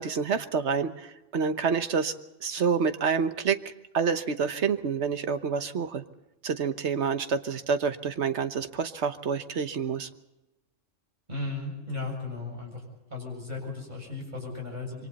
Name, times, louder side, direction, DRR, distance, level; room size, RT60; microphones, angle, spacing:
voice 1, 0.0-2.1 2.4-3.6 3.9-6.0 6.4-10.1, right 6 dB, 60° right, 9 dB, 1.3 m, -28 dB
voice 2, 11.3-12.8 13.1-15.1, left 3 dB, 35° right, 0 dB, 7.6 m, -35 dB
27.0 x 24.0 x 4.2 m, 0.96 s
omnidirectional pair, 1.3 m